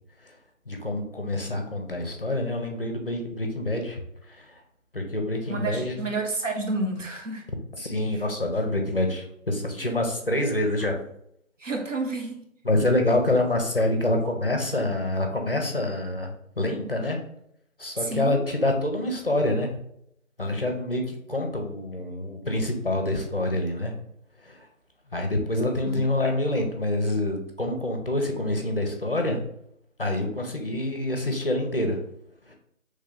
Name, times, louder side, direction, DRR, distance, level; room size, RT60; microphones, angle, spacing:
voice 1, 0.7-4.6 4.9-6.0 7.8-11.0 12.6-17.2 17.8-19.7 20.4-23.9 24.4-24.7 25.1-29.4 30.0-32.0 32.5-32.6, left 1 dB, 45° left, 3 dB, 0.6 m, -26 dB
voice 2, 5.5-7.4 11.6-12.4 18.0-18.4 25.9-26.0, right 2 dB, 65° right, 2 dB, 1.0 m, -30 dB
3.1 x 2.8 x 3.8 m, 0.74 s
figure-of-eight pair, 170°, 40 cm